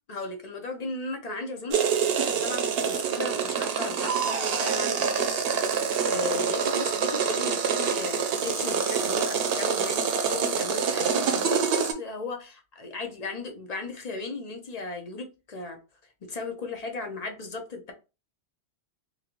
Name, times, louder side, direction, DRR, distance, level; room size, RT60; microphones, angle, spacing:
voice 1, 0.1-1.8 2.4-15.8 16.2-17.9, left 2 dB, 40° left, 0.7 m, -36 dB
sound 1, 1.7-11.9, right 6 dB, 65° right, 0.8 m, -26 dB
3.1 x 2.6 x 2.9 m
omnidirectional pair, 1.1 m